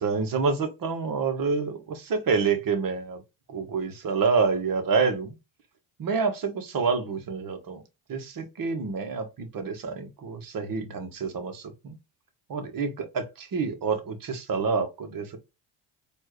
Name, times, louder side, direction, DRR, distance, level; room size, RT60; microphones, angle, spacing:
voice 1, 0.0-3.2 3.5-5.3 6.0-7.8 8.1-11.9 12.5-15.3, right 5 dB, 45° right, 1.5 m, -28 dB
4.4 x 2.8 x 3.1 m
supercardioid pair, 75°, 45 cm